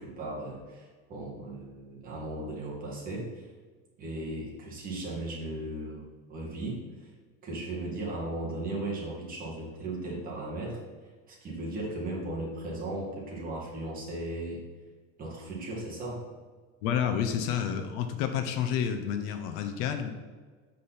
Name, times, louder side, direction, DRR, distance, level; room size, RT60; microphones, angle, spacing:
voice 1, 0.0-3.5 4.0-7.1 7.4-10.8 11.3-14.6 15.2-16.2, right 2 dB, 25° right, -4 dB, 2.0 m, -36 dB
voice 2, 16.8-20.1, left 8 dB, 60° left, 7 dB, 0.8 m, -29 dB
7.6 x 5.1 x 4.2 m, 1.4 s
cardioid pair, 165°, 32 cm